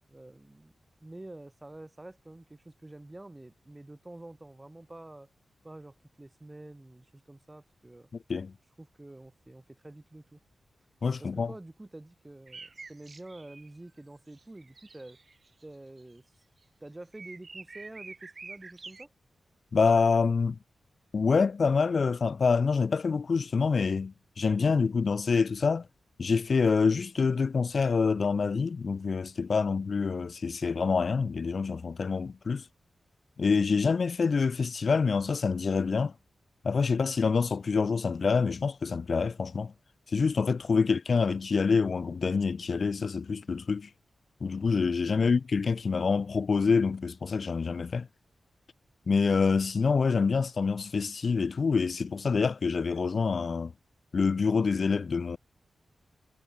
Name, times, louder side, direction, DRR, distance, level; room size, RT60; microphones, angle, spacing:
voice 1, 0.1-0.7 1.0-5.3 5.6-8.1 8.8-10.4 11.2-15.2 15.6-16.2 16.8-19.1 40.9-41.0 45.1-45.3, right 2 dB, 20° right, 7.9 m, -48 dB
voice 2, 11.0-11.5 19.7-20.6 21.1-25.9 26.2-32.6 33.4-36.1 36.6-39.7 40.1-43.9 44.4-48.1 49.1-53.7 54.1-55.4, left 5 dB, 60° left, 1.3 m, -26 dB
sound 1, 12.5-13.7 14.3-15.6 16.0-16.2 16.6-16.7 17.1-19.1, right 4 dB, 50° right, 3.2 m, -47 dB
cardioid pair, 60°, 0 cm